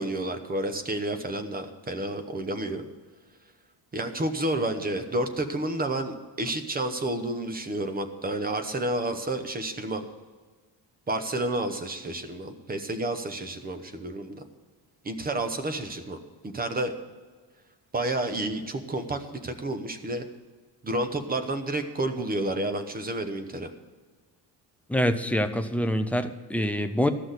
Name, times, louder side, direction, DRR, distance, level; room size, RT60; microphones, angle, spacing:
voice 1, 0.0-2.8 3.9-10.1 11.1-14.4 15.0-16.2 16.4-16.9 17.9-20.3 20.8-23.7, right 1 dB, 20° right, 8 dB, 0.8 m, -30 dB
voice 2, 24.9-27.1, equal, 5° left, 7 dB, 0.3 m, -25 dB
13.5 x 6.1 x 7.9 m, 1.4 s
cardioid pair, 175°, 43 cm